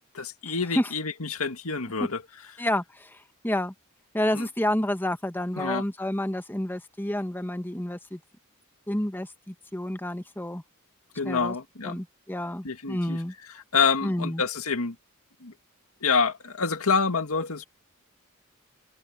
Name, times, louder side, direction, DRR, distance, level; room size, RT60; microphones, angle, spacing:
voice 1, 0.1-2.2 2.6-2.7 4.3-4.5 5.6-5.8 11.2-12.0 12.6-13.2 13.5-15.0 15.4-15.5 16.0-17.7, left 5 dB, 85° left, 2.0 m, -27 dB
voice 2, 2.6-3.7 4.1-8.2 8.9-10.6 11.2-11.5 11.8-13.3 14.0-14.4, left 1 dB, 10° left, 1.1 m, -29 dB
head